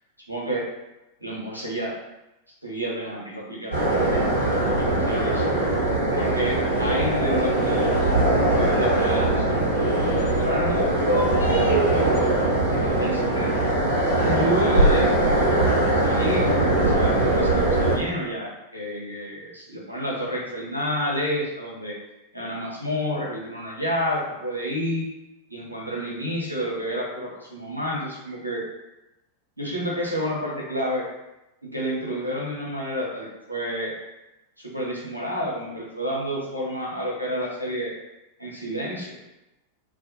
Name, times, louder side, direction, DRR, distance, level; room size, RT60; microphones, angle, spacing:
voice 1, 0.3-0.7 1.2-2.0 2.6-4.2 4.6-5.5 6.1-8.1 8.5-9.6 10.3-12.2 12.9-13.7 14.2-15.1 16.0-22.0 22.3-25.1 25.5-28.7 29.6-31.1 31.6-34.0 34.6-37.9 38.4-39.2, equal, 90° right, -5 dB, 0.7 m, -29 dB
sound 1, 3.7-18.0, right 1 dB, 85° left, 1.0 m, -21 dB
2.5 x 2.0 x 2.6 m, 0.95 s
figure-of-eight pair, 90°, 0 cm